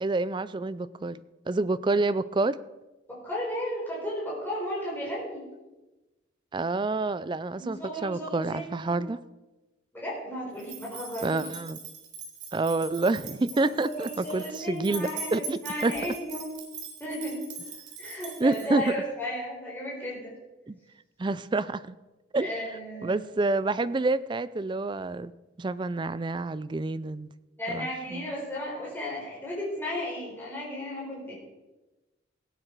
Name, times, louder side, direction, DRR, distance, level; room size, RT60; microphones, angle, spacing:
voice 1, 0.0-2.6 6.5-9.2 11.2-11.8 12.5-15.9 18.4-18.9 20.7-20.8 21.2-22.0 22.3-22.5 23.0-25.3 25.6-27.3 27.7-28.2, right 3 dB, 25° right, 16 dB, 0.4 m, -28 dB
voice 2, 3.1-5.4 7.6-9.0 9.9-11.5 13.5-16.5 17.0-17.4 18.0-20.3 22.4-23.2 27.6-31.3, equal, 10° left, -6 dB, 4.2 m, -34 dB
sound 1, 10.6-18.9, right 5 dB, 80° right, 3.3 m, -42 dB
17.0 x 9.0 x 4.6 m, 1.1 s
head